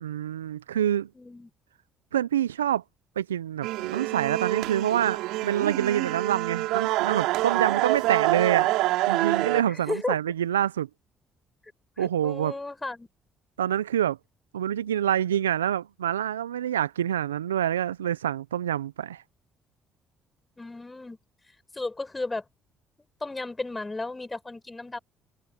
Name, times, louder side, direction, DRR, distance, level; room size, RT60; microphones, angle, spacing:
voice 1, 0.0-1.1 2.1-2.8 3.2-8.7 9.1-10.9 12.0-12.6 13.6-14.2 14.5-19.2, right 10 dB, 90° right, 0.5 m, -26 dB
voice 2, 1.1-1.5 9.6-10.2 12.0-13.1 20.6-21.2 21.7-22.4 23.2-25.0, left 2 dB, 20° left, 6.0 m, -34 dB
sound 1, 3.6-9.6, right 18 dB, 70° right, 3.3 m, -26 dB
hypercardioid pair, 50°, 0 cm